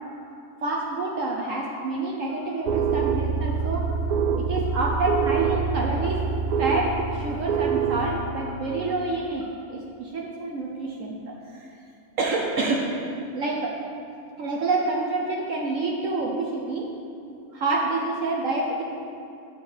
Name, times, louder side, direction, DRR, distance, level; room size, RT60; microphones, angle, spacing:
voice 1, 0.6-3.9 4.4-11.7 12.2-12.9 13.3-13.8 14.4-16.9 17.5-18.8, right 2 dB, 60° right, -2 dB, 1.1 m, -28 dB
sound 1, 2.7-8.4, right 6 dB, 80° right, 1.1 m, -25 dB
9.3 x 6.9 x 4.5 m, 2.7 s
omnidirectional pair, 1.6 m